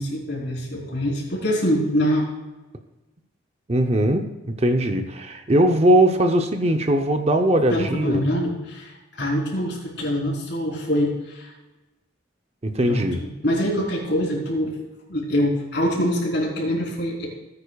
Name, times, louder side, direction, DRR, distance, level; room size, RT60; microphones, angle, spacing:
voice 1, 0.0-2.2 7.7-11.5 12.8-14.7 15.1-17.3, equal, 60° left, -2 dB, 3.7 m, -24 dB
voice 2, 3.7-8.3 12.6-13.2, right 1 dB, 30° right, 5 dB, 0.7 m, -20 dB
18.0 x 9.8 x 2.4 m, 1.1 s
head